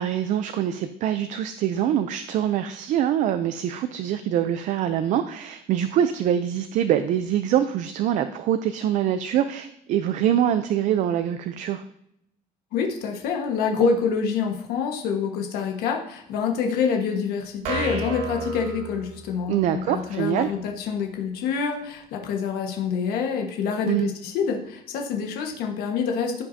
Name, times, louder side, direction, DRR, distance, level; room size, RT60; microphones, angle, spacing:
voice 1, 0.0-11.8 19.5-20.5 23.9-24.1, right 10 dB, 50° right, 10 dB, 0.4 m, -24 dB
voice 2, 12.7-26.4, left 6 dB, 70° left, 2 dB, 1.4 m, -26 dB
sound 1, 17.6-19.6, right 2 dB, 70° right, 2.3 m, -31 dB
14.5 x 5.8 x 2.7 m, 0.77 s
cardioid pair, 180°, 17 cm